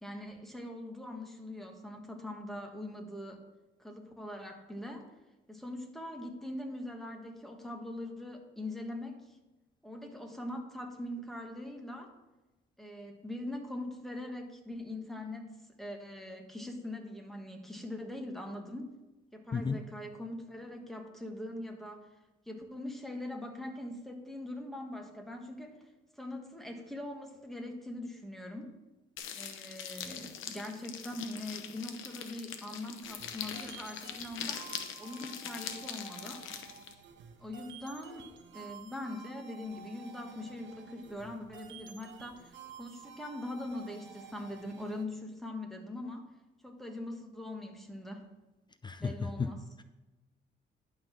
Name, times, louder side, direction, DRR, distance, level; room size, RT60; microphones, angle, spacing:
voice 1, 0.0-3.4 3.8-5.1 5.5-9.4 9.8-12.1 12.8-15.5 15.8-18.9 19.3-22.1 22.5-25.8 26.2-28.7 29.3-34.7 35.0-36.4 37.4-38.3 38.5-46.3 46.6-48.2 49.0-49.6, left 1 dB, ahead, 3 dB, 1.5 m, -42 dB
voice 2, 19.5-19.8 48.8-49.1 49.4-49.5, left 5 dB, 20° left, 10 dB, 0.5 m, -32 dB
sound 1, 29.2-36.9, left 8 dB, 80° left, 0.9 m, -42 dB
sound 2, 33.0-45.0, right 7 dB, 70° right, 1.2 m, -52 dB
11.0 x 4.0 x 6.0 m, 1.1 s
cardioid pair, 90°, 20 cm